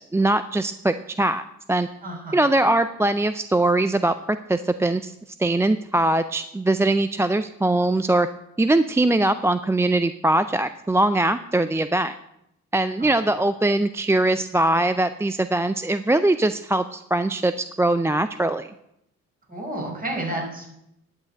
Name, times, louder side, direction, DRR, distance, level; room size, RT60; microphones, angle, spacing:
voice 1, 0.1-1.9 2.3-5.1 5.4-8.3 8.6-12.2 12.7-18.7, right 2 dB, 10° right, 12 dB, 0.4 m, -21 dB
voice 2, 2.0-2.4 13.0-13.1 19.5-20.8, right 1 dB, 30° right, 0 dB, 5.2 m, -31 dB
10.5 x 6.6 x 8.5 m, 0.80 s
cardioid pair, 90°, 30 cm